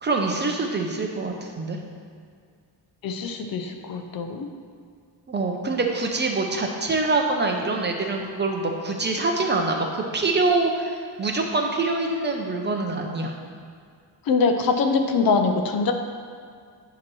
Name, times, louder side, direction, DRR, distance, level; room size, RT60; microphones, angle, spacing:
voice 1, 0.0-1.8 5.3-13.3, right 3 dB, 25° right, 2 dB, 0.5 m, -25 dB
voice 2, 3.0-4.5 14.3-15.9, left 4 dB, 55° left, 6 dB, 0.7 m, -23 dB
9.0 x 3.0 x 6.1 m, 2.1 s
cardioid pair, 145°, 43 cm